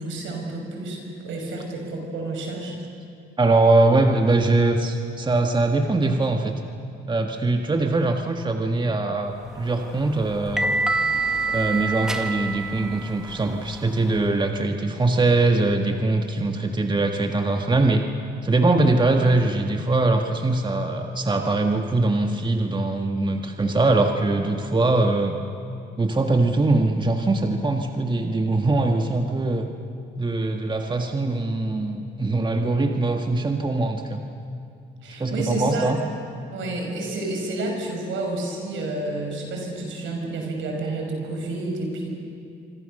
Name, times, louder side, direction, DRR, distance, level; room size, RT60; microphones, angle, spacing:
voice 1, 0.0-2.7 35.0-35.9 36.4-42.1, right 2 dB, 75° right, 1 dB, 6.1 m, -30 dB
voice 2, 3.4-6.5 7.1-10.7 11.5-18.1 18.4-25.4 26.0-29.7 30.2-34.2 35.2-36.0, right 2 dB, 25° right, 4 dB, 1.7 m, -22 dB
sound 1, 9.5-14.3, right 3 dB, 5° right, 1.7 m, -27 dB
25.5 x 25.5 x 6.7 m, 2.5 s
cardioid pair, 90°, 20 cm